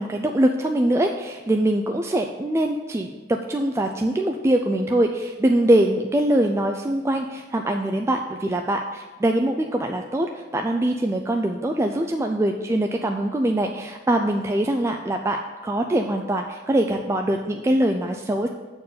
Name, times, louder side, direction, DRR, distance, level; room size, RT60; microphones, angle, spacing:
voice 1, 0.0-15.4 15.6-18.5, right 1 dB, 15° right, 3 dB, 0.3 m, -23 dB
8.3 x 4.5 x 6.7 m, 1.4 s
head